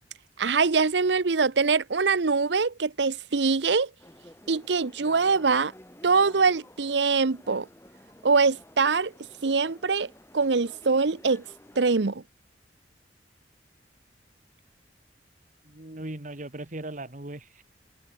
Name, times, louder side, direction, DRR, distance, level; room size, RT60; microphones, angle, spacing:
voice 1, 0.4-3.9 4.5-5.7 6.0-7.7 8.2-9.1 9.4-11.4 11.8-12.2, right 4 dB, 70° right, 0.8 m, -23 dB
sound 1, 4.0-11.9, left 1 dB, 15° left, 3.8 m, -51 dB
voice 2, 15.6-17.6, right 1 dB, 45° right, 1.9 m, -38 dB
head